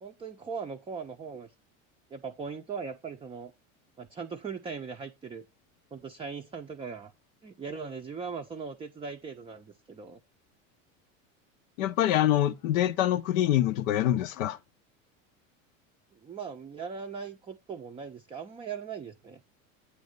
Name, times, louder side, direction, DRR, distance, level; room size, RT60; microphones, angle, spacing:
voice 1, 0.0-1.5 2.1-3.5 4.0-5.4 5.9-7.1 7.4-10.2 16.2-19.4, right 5 dB, 15° right, 0.4 m, -39 dB
voice 2, 11.8-14.6, left 12 dB, 85° left, 0.6 m, -25 dB
8.3 x 3.1 x 5.2 m
supercardioid pair, 105°, 39 cm